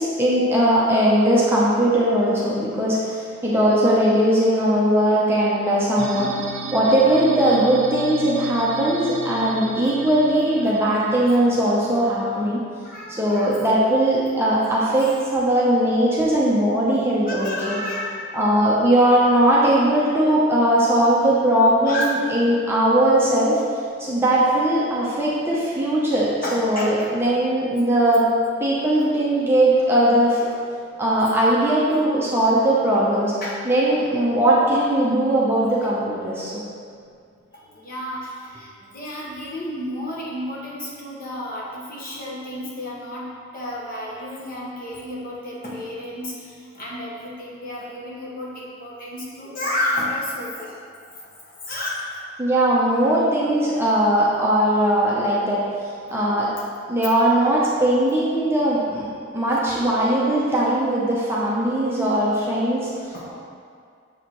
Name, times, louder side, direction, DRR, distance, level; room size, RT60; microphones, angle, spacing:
voice 1, 0.0-6.3 6.7-12.6 13.1-17.8 18.3-23.6 24.0-28.3 28.6-30.4 31.0-33.3 33.6-36.6 52.4-55.6 56.1-56.5 56.9-59.1 59.3-63.3, right 1 dB, 10° right, -7 dB, 0.7 m, -19 dB
sound 1, 6.0-12.5, right 3 dB, 55° right, 0.4 m, -35 dB
voice 2, 10.6-11.4 12.3-12.4 12.8-13.6 14.6-14.7 15.0-15.1 17.2-18.2 21.8-22.2 26.4-27.3 28.9-29.1 29.8-29.9 30.5-30.6 33.4-33.6 37.7-50.8 51.1-51.2 51.7-52.2 63.1-63.3, left 1 dB, 45° left, -6 dB, 1.2 m, -31 dB
6.9 x 4.8 x 3.0 m, 2.2 s
head